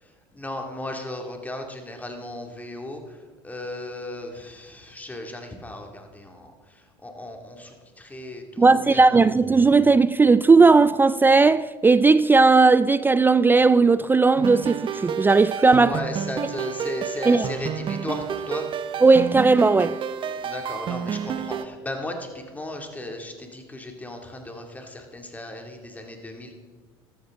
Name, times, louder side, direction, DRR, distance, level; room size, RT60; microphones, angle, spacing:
voice 1, 0.0-9.2 15.8-18.7 20.4-26.5, left 1 dB, 10° left, 2.4 m, -36 dB
voice 2, 8.6-15.9 17.3-17.5 19.0-20.0, right 4 dB, 15° right, 0.3 m, -17 dB
sound 1, 14.4-21.7, right 7 dB, 40° right, 0.8 m, -30 dB
13.5 x 13.5 x 3.7 m
hypercardioid pair, 80°, 13 cm